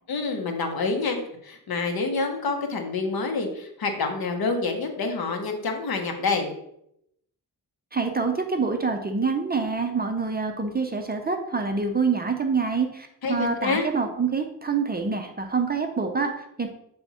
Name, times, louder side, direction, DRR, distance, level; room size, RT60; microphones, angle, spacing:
voice 1, 0.1-6.5 13.2-13.9, left 4 dB, 65° left, 4 dB, 1.0 m, -27 dB
voice 2, 7.9-16.7, right 4 dB, 25° right, 5 dB, 0.5 m, -26 dB
7.0 x 3.5 x 4.2 m, 0.77 s
wide cardioid pair, 150°, 39 cm